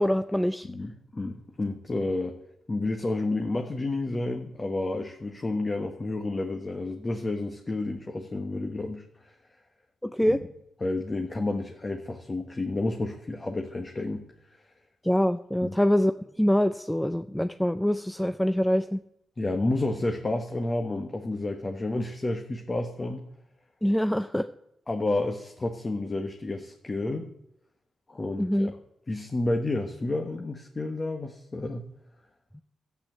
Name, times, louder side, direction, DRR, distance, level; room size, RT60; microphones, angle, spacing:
voice 1, 0.0-0.7 10.0-10.4 15.0-16.1 16.4-19.0 23.8-24.5 28.4-28.7 32.5-32.6, equal, 5° left, 10 dB, 0.5 m, -24 dB
voice 2, 0.6-2.4 2.7-9.0 10.3-10.4 10.8-14.2 15.6-15.8 19.4-23.2 24.9-27.3 28.1-28.7 29.1-31.8, left 2 dB, 30° left, 3 dB, 1.3 m, -30 dB
12.0 x 8.2 x 9.0 m, 0.78 s
cardioid pair, 80°, 0 cm